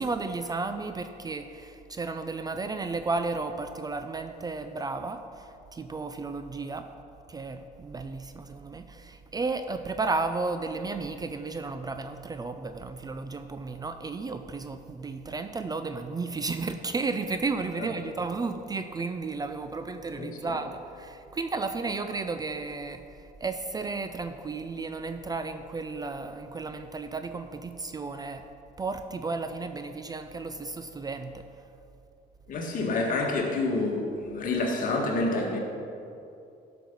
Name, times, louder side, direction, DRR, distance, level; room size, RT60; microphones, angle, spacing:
voice 1, 0.0-6.9 7.3-28.5 28.8-31.4, right 3 dB, 20° right, 8 dB, 0.5 m, -33 dB
voice 2, 20.1-20.6 32.5-35.6, left 2 dB, 55° left, 0 dB, 1.9 m, -28 dB
12.5 x 6.0 x 5.3 m, 2.7 s
cardioid pair, 110°, 17 cm